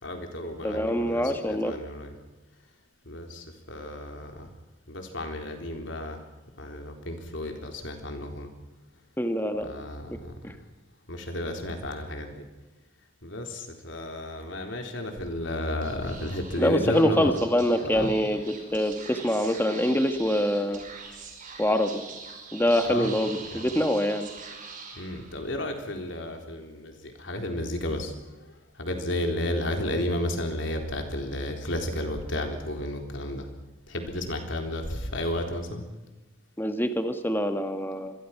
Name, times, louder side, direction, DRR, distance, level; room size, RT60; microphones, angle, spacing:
voice 1, 0.0-2.1 3.0-4.5 4.9-6.2 6.6-8.5 9.6-10.3 11.1-12.5 13.2-17.3 17.9-18.1 22.9-23.1 23.5-23.7 25.0-33.5 33.9-35.8, left 1 dB, 65° left, 4 dB, 4.0 m, -32 dB
voice 2, 0.6-1.7 9.2-9.7 10.4-10.5 16.6-18.4 18.7-20.8 21.6-22.0 22.5-24.3 36.6-38.1, equal, 10° left, 7 dB, 1.7 m, -25 dB
Speech / Whispering, 15.8-25.6, right 4 dB, 40° right, 5.3 m, -43 dB
27.0 x 21.5 x 6.0 m, 1.2 s
head